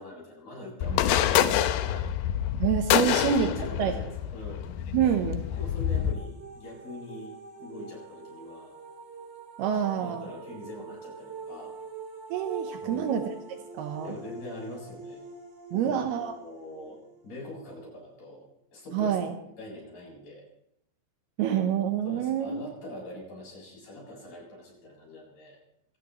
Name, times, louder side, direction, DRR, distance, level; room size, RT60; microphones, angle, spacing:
voice 1, 0.0-2.3 3.0-4.7 5.6-8.8 9.9-11.8 12.8-13.2 14.0-15.2 15.7-18.4 18.7-19.3 19.6-20.5 22.0-25.6, left 1 dB, 55° left, -3 dB, 9.0 m, -43 dB
sound 1, 0.8-6.1, left 11 dB, 75° left, 2.5 m, -27 dB
voice 2, 2.6-3.5 3.8-3.9 4.9-5.4 9.6-10.3 12.3-13.2 13.7-14.2 15.7-16.3 18.9-19.3 21.4-22.6, right 8 dB, 75° right, 5 dB, 2.9 m, -27 dB
sound 2, 5.2-18.1, right 4 dB, 35° right, 2.4 m, -44 dB
25.5 x 18.0 x 3.1 m, 0.78 s
omnidirectional pair, 4.7 m